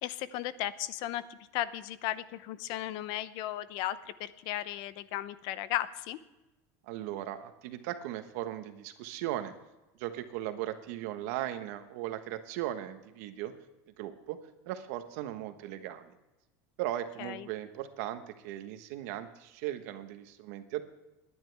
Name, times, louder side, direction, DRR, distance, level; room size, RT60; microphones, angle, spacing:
voice 1, 0.0-1.2 1.5-6.2 17.2-17.5, left 13 dB, 60° left, 16 dB, 0.7 m, -35 dB
voice 2, 6.8-9.5 10.0-13.5 14.0-14.4 14.7-16.1 16.8-20.8, right 13 dB, 70° right, 9 dB, 1.3 m, -37 dB
20.0 x 10.5 x 3.5 m, 1.0 s
supercardioid pair, 135°, 9 cm